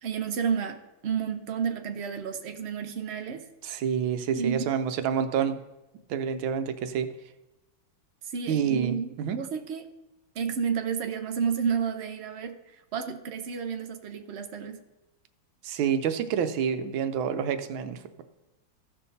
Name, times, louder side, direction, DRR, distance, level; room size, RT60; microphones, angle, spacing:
voice 1, 0.0-3.4 4.3-4.7 8.3-9.8 10.4-12.6 12.9-14.8, right 6 dB, 70° right, 6 dB, 0.6 m, -31 dB
voice 2, 3.6-5.6 6.1-7.1 8.5-9.4 15.6-18.2, right 8 dB, 90° right, 9 dB, 1.5 m, -28 dB
15.0 x 5.8 x 4.1 m, 1.0 s
omnidirectional pair, 2.1 m